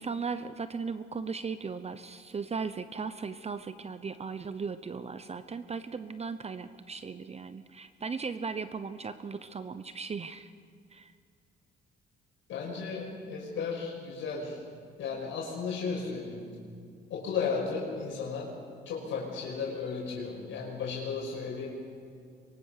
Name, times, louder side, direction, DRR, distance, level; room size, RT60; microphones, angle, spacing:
voice 1, 0.0-10.5 10.9-11.1, right 5 dB, 30° right, 11 dB, 0.8 m, -37 dB
voice 2, 12.5-14.6 15.0-16.5 17.1-18.5 18.9-21.7, left 5 dB, 80° left, -3 dB, 5.7 m, -34 dB
23.5 x 23.5 x 6.7 m, 2.3 s
cardioid pair, 90°, 20 cm